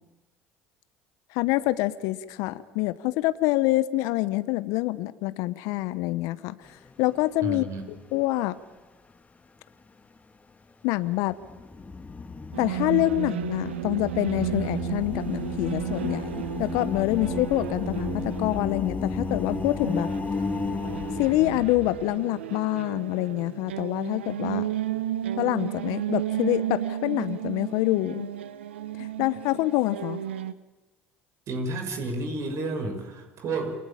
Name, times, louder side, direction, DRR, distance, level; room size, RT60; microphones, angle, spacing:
voice 1, 1.3-6.5 7.0-7.7 8.1-8.6 10.8-11.3 12.6-20.1 21.2-24.7 25.4-28.3 29.0-30.2, left 18 dB, 70° left, 14 dB, 1.1 m, -26 dB
sound 1, 6.7-7.3 7.7-7.8 11.3-22.2, left 3 dB, 25° left, 2.3 m, -33 dB
voice 2, 7.4-7.8 31.5-33.8, right 2 dB, 55° right, 5 dB, 6.2 m, -31 dB
sound 2, 12.5-30.5, right 12 dB, 90° right, 1.0 m, -33 dB
29.5 x 23.0 x 8.8 m, 1.1 s
hypercardioid pair, 65°, 6 cm